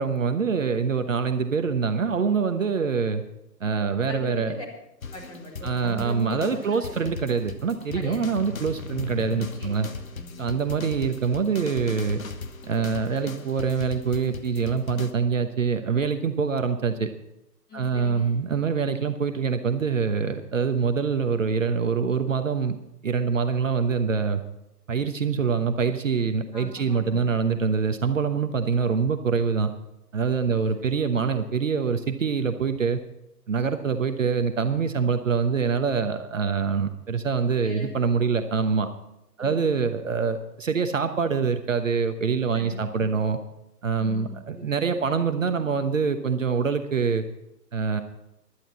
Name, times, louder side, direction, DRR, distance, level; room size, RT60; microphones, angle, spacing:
voice 1, 0.0-3.2 3.6-4.5 5.6-9.9 10.4-12.2 12.6-17.1 17.7-22.8 23.0-24.4 24.9-29.7 30.1-33.0 33.5-38.9 39.4-43.4 43.8-47.2 47.7-48.0, right 5 dB, 50° right, 8 dB, 1.1 m, -25 dB
voice 2, 4.1-4.6 5.1-7.1 7.9-8.2 9.6-10.6 17.7-18.3 26.5-27.3 30.5-30.8 37.6-37.9 39.4-39.9 42.5-43.1 44.0-44.7, left 1 dB, 10° left, -3 dB, 2.3 m, -40 dB
sound 1, 5.0-15.1, left 5 dB, 55° left, 1.3 m, -38 dB
16.5 x 11.5 x 4.3 m, 0.86 s
figure-of-eight pair, 140°, 50 cm